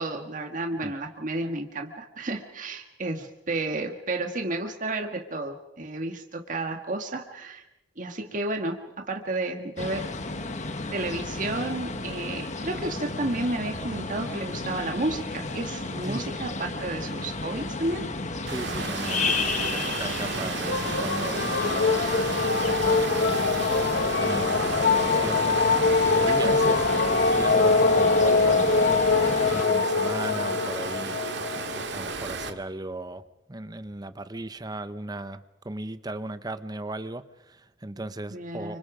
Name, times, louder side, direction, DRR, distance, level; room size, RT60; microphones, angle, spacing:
voice 1, 0.0-7.6 8.0-10.1 10.9-18.1 26.3-26.5 38.3-38.8, right 2 dB, 45° right, 4 dB, 1.7 m, -31 dB
sound 1, 9.8-29.7, left 3 dB, 40° left, 1.4 m, -33 dB
voice 2, 18.5-23.7 23.9-24.6 25.0-29.0 29.4-31.2 31.5-33.2 33.5-38.8, right 2 dB, 20° right, 12 dB, 0.9 m, -37 dB
Water, 18.5-32.5, right 4 dB, 65° right, 2.0 m, -33 dB
sound 2, 20.7-32.5, left 4 dB, 60° left, 1.0 m, -23 dB
29.5 x 25.5 x 5.0 m, 0.93 s
head